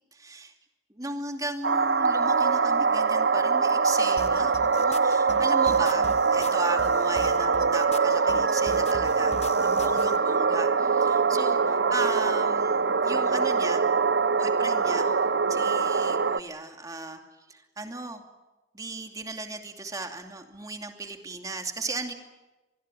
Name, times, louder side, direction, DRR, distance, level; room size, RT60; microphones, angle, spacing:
voice 1, 0.1-0.5 0.9-13.8 14.3-15.1 15.5-17.2 17.5-18.2 18.7-22.1, right 2 dB, 20° right, 4 dB, 2.7 m, -36 dB
sound 1, 1.6-16.4, right 5 dB, 70° right, 0.8 m, -23 dB
sound 2, 4.2-10.2, left 2 dB, 35° left, 1.4 m, -41 dB
25.5 x 21.0 x 9.0 m, 1.1 s
head